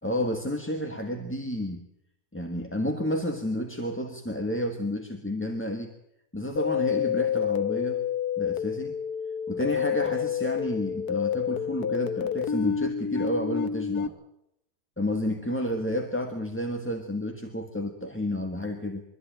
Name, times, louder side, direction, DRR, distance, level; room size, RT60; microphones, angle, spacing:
voice 1, 0.0-1.8 2.3-5.9 6.3-8.0 8.4-9.0 9.5-14.1 15.0-19.0, left 1 dB, 10° left, 4 dB, 1.5 m, -31 dB
sound 1, 6.6-14.1, left 8 dB, 85° left, 1.6 m, -28 dB
24.0 x 14.0 x 9.0 m, 0.82 s
omnidirectional pair, 1.6 m